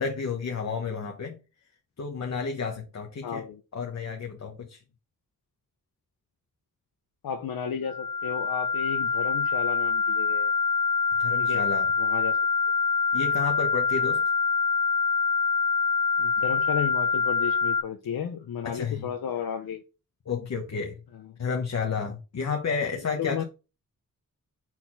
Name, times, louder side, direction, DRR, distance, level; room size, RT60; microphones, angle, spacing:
voice 1, 0.0-1.4 2.0-3.4 3.7-4.8 11.2-11.9 13.1-14.2 18.7-19.1 20.3-21.0 21.4-23.4, left 5 dB, 50° left, 1.1 m, -31 dB
voice 2, 3.2-3.6 7.2-10.5 11.4-11.7 12.0-12.4 14.0-14.1 16.2-19.8 21.1-21.3 23.2-23.4, left 8 dB, 80° left, 0.8 m, -33 dB
sound 1, 7.9-17.8, left 5 dB, 20° left, 0.6 m, -25 dB
4.3 x 4.1 x 5.7 m
wide cardioid pair, 90°, 35 cm